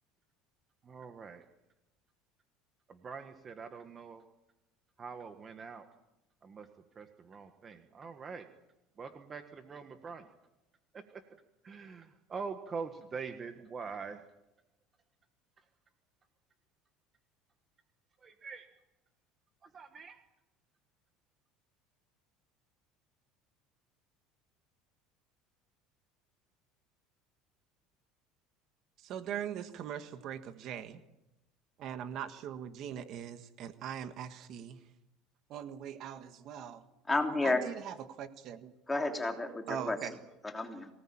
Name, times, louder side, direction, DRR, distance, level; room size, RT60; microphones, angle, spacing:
voice 1, 0.8-1.4 2.9-4.2 5.0-5.9 6.4-6.7 6.9-8.5 9.0-10.3 10.9-11.2 11.6-14.2 18.2-18.7 19.6-20.2, right 5 dB, 25° right, 7 dB, 1.6 m, -44 dB
voice 2, 29.0-31.0 31.8-34.8 35.5-36.8 37.4-38.7 39.7-40.1, right 9 dB, 50° right, 9 dB, 1.6 m, -41 dB
voice 3, 37.1-37.7 38.9-40.2 40.4-40.9, left 2 dB, 10° left, 3 dB, 3.2 m, -31 dB
24.0 x 19.0 x 8.9 m, 0.93 s
cardioid pair, 150°, 0 cm